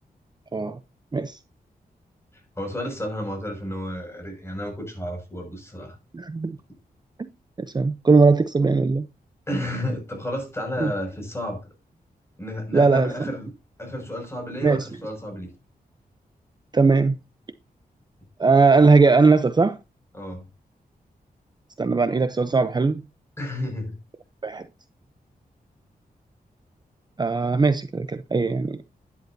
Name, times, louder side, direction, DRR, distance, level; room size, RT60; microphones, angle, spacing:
voice 1, 2.6-6.0 9.5-11.6 12.4-13.5 13.8-15.5 20.1-20.4 23.4-23.9, left 1 dB, 15° left, 6.2 m, -31 dB
voice 2, 6.1-6.6 7.2-7.3 7.6-9.1 10.8-10.9 12.7-13.3 14.6-14.9 16.7-17.2 18.4-19.8 21.8-23.0 24.4-24.7 27.2-28.8, right 4 dB, 25° right, 0.7 m, -19 dB
12.0 x 11.0 x 2.7 m
wide cardioid pair, 115°, 16 cm